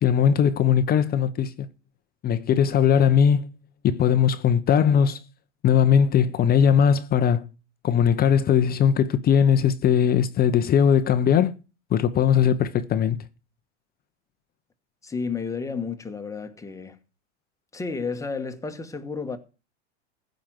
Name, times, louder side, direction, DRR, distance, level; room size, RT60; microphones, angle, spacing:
voice 1, 0.0-1.5 2.2-3.5 3.8-5.2 5.6-7.5 7.8-11.5 11.9-13.2, left 8 dB, 25° left, 0.8 m, -19 dB
voice 2, 15.0-17.0 17.7-19.4, left 4 dB, 10° left, 1.4 m, -31 dB
15.5 x 5.2 x 7.6 m
supercardioid pair, 130°, 36 cm